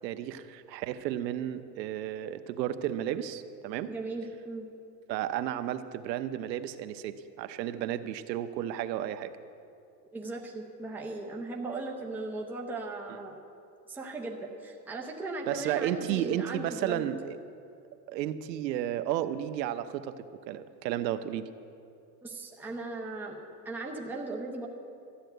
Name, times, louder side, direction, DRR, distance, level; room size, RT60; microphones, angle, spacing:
voice 1, 0.0-3.9 5.1-9.3 15.5-17.4 18.1-21.4, right 11 dB, 85° right, 11 dB, 0.9 m, -33 dB
voice 2, 3.8-4.7 10.1-13.4 13.9-17.1 22.2-24.7, right 2 dB, 5° right, 0 dB, 0.6 m, -38 dB
13.0 x 10.0 x 7.9 m, 2.5 s
supercardioid pair, 160°, 50 cm